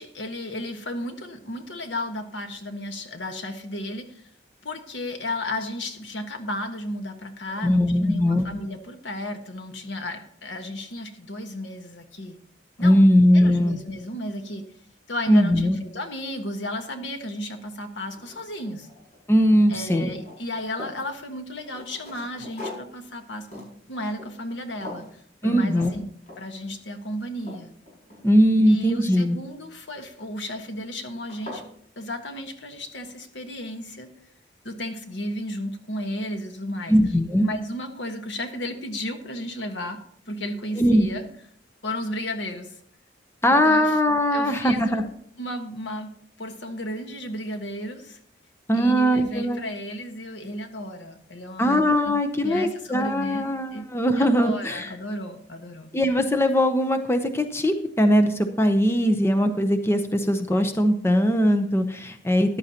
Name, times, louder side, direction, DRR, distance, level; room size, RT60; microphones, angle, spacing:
voice 1, 0.0-4.3 4.6-12.4 12.8-13.0 13.3-14.7 15.1-18.9 19.7-26.1 26.4-27.7 28.7-31.6 32.0-34.1 34.6-36.9 37.4-40.0 40.3-41.3 41.8-42.8 43.5-44.0 44.3-45.1 45.4-48.2 48.7-52.1 52.4-53.9 54.2-55.9, left 1 dB, 75° left, 6 dB, 1.4 m, -33 dB
voice 2, 7.6-8.5 12.8-13.8 15.3-15.8 19.3-20.1 25.4-25.9 28.2-29.4 36.9-37.5 40.8-41.1 43.4-45.0 48.7-49.6 51.6-54.9 55.9-62.6, equal, 15° left, 7 dB, 0.7 m, -20 dB
sound 1, 17.4-17.5 17.9-19.4 19.7-21.0 21.6-24.6 24.8-25.2 25.7-25.9 26.3-26.6 27.0-28.6 30.1-30.5 31.0-31.1 31.3-31.7, left 2 dB, 40° left, 5.9 m, -42 dB
14.0 x 11.5 x 2.9 m, 0.63 s
head